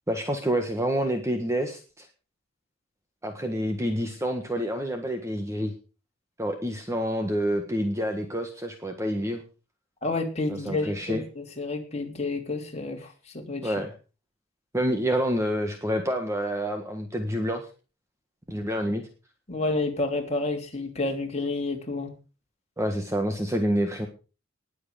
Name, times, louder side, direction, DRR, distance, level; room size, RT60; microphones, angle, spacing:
voice 1, 0.1-2.1 3.2-5.7 6.4-9.4 10.5-11.2 13.6-13.9 14.7-17.7 18.5-19.0 22.8-24.1, equal, 15° right, 5 dB, 1.6 m, -28 dB
voice 2, 10.0-13.7 19.5-22.1, left 2 dB, 35° left, 2 dB, 3.2 m, -30 dB
19.5 x 7.9 x 5.1 m, 0.34 s
head